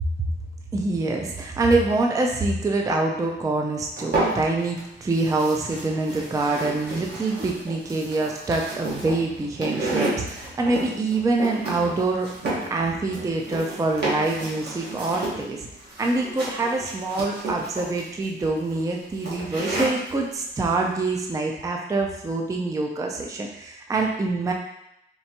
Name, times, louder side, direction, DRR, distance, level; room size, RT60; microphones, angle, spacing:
voice 1, 0.7-12.3 12.7-15.7 16.0-24.5, right 2 dB, 15° right, 1 dB, 0.3 m, -25 dB
sound 1, 4.0-4.8 5.1-20.1, right 2 dB, 55° right, 1.3 m, -31 dB
4.4 x 3.3 x 2.8 m, 0.83 s
wide cardioid pair, 150°, 20 cm